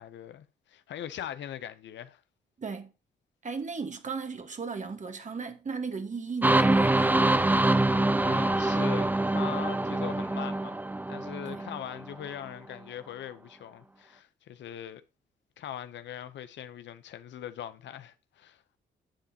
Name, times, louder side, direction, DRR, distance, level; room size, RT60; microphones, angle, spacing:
voice 1, 0.0-2.2 8.2-10.8 11.1-15.0 15.6-18.6, left 10 dB, 70° left, 0.8 m, -41 dB
voice 2, 2.6-2.9 3.4-7.5 11.5-11.6, right 5 dB, 40° right, 1.5 m, -36 dB
sound 1, 6.4-12.1, right 2 dB, 10° right, 0.6 m, -25 dB
10.0 x 7.7 x 2.9 m
supercardioid pair, 55°, 19 cm